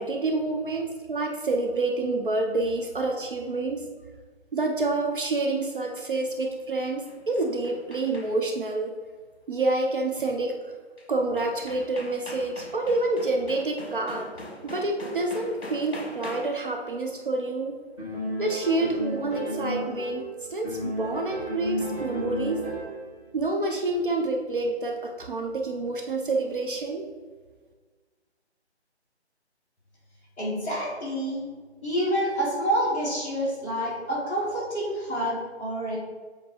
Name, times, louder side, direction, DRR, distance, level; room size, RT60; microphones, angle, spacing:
voice 1, 0.0-3.9 4.5-8.9 9.5-10.6 11.1-14.3 14.6-17.8 18.4-20.2 20.5-22.7 23.3-27.1, right 2 dB, 50° right, 2 dB, 0.7 m, -28 dB
sound 1, 6.8-8.6 11.0-11.1 11.4-16.7, left 1 dB, 65° left, 1.2 m, -42 dB
sound 2, 18.0-20.3 20.6-23.1, equal, 5° right, 1.5 m, -32 dB
voice 2, 30.4-31.4 31.8-36.0, equal, 10° left, -10 dB, 1.5 m, -28 dB
7.5 x 3.0 x 4.4 m, 1.5 s
figure-of-eight pair, 155°, 34 cm